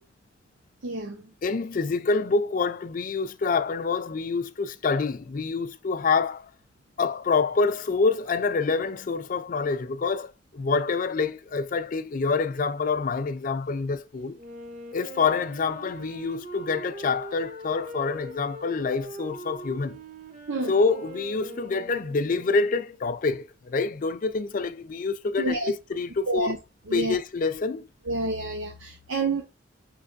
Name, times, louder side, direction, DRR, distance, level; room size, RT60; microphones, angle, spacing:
voice 1, 0.8-1.2 20.5-20.7 25.4-25.7 26.3-26.6 26.9-27.2 28.1-29.4, right 2 dB, 80° right, 0.8 m, -28 dB
voice 2, 1.4-6.5 7.0-14.4 14.9-20.0 20.7-26.5 26.9-27.9, left 4 dB, 40° left, 0.4 m, -26 dB
Wind instrument woodwind instrument, 14.3-22.9, right 1 dB, 40° right, 0.7 m, -42 dB
5.9 x 3.2 x 2.5 m
head